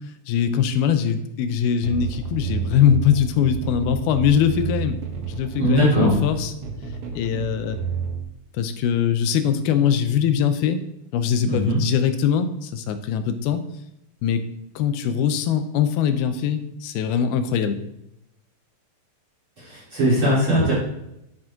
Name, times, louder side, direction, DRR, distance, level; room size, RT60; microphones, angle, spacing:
voice 1, 0.3-5.0 5.3-6.5 7.1-7.8 8.6-10.8 11.1-13.6 14.2-14.4 14.8-17.8, left 8 dB, 90° left, 9 dB, 2.7 m, -22 dB
sound 1, 1.8-8.2, right 6 dB, 60° right, 1.7 m, -30 dB
voice 2, 5.6-6.2 11.5-11.8 19.6-20.7, equal, 35° right, -8 dB, 4.1 m, -20 dB
12.0 x 6.0 x 3.8 m, 0.82 s
omnidirectional pair, 4.3 m